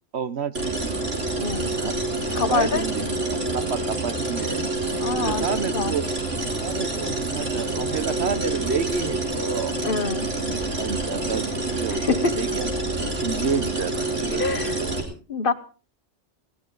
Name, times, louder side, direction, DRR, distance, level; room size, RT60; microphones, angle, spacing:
voice 1, 0.1-0.9 1.6-1.9 2.3-3.2 3.5-4.7 5.2-6.0 6.6-9.7 10.3-12.0 12.3-14.5 14.8-14.9, right 6 dB, 65° right, 13 dB, 1.3 m, -30 dB
sound 1, 0.5-15.0, right 2 dB, 85° right, 4.0 m, -27 dB
voice 2, 2.3-2.8 5.0-5.5 5.7-5.9 9.8-10.3 11.9-12.4 14.4-14.8 15.3-15.5, left 4 dB, 50° left, 11 dB, 1.2 m, -25 dB
20.0 x 17.0 x 3.9 m, 0.37 s
omnidirectional pair, 1.2 m